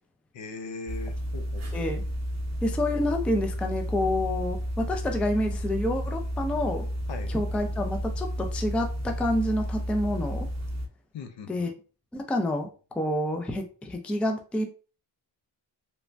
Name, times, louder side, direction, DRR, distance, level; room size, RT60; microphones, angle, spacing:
voice 1, 0.3-1.9 7.1-7.3 11.1-11.7, left 4 dB, 65° left, 8 dB, 0.6 m, -40 dB
sound 1, 0.9-10.9, equal, 35° right, 0.7 m, -32 dB
voice 2, 1.7-2.0 2.6-6.9 7.3-10.5 11.5-11.7 12.1-14.7, left 1 dB, 5° left, 4 dB, 0.4 m, -28 dB
3.1 x 2.1 x 2.5 m, 0.36 s
cardioid pair, 70°, 49 cm